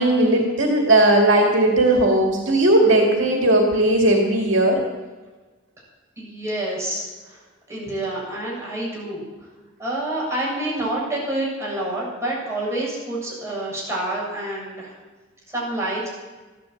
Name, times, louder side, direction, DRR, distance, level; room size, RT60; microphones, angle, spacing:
voice 1, 0.0-4.8, right 1 dB, 65° right, 0 dB, 2.4 m, -17 dB
voice 2, 6.2-7.4 7.7-9.2 9.8-14.9 15.5-16.1, right 1 dB, 15° right, -5 dB, 7.0 m, -28 dB
15.0 x 11.5 x 7.8 m, 1.3 s
head